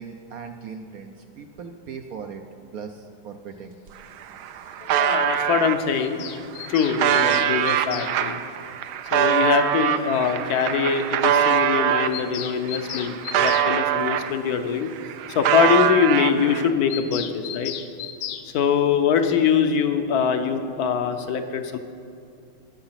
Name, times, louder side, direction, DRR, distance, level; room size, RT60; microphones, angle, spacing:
voice 1, 0.0-2.4 2.7-3.8, right 6 dB, 75° right, 6 dB, 0.8 m, -38 dB
sound 1, 3.9-4.0 4.2-5.8 6.4-12.2 12.6-14.6 14.9-16.7, right 9 dB, 90° right, 1.5 m, -23 dB
voice 2, 4.8-6.2 6.7-8.4 9.1-14.9 15.3-17.7 18.4-21.8, left 7 dB, 60° left, 8 dB, 1.1 m, -23 dB
Bird vocalization bird call bird song, 6.0-8.1 9.6-9.7 9.9-10.0 10.2-10.3 10.6-10.7 11.0-11.1 11.3-11.5 11.7-13.7 16.9-18.5, left 11 dB, 90° left, 1.5 m, -36 dB
19.0 x 6.9 x 5.8 m, 2.5 s
omnidirectional pair, 2.2 m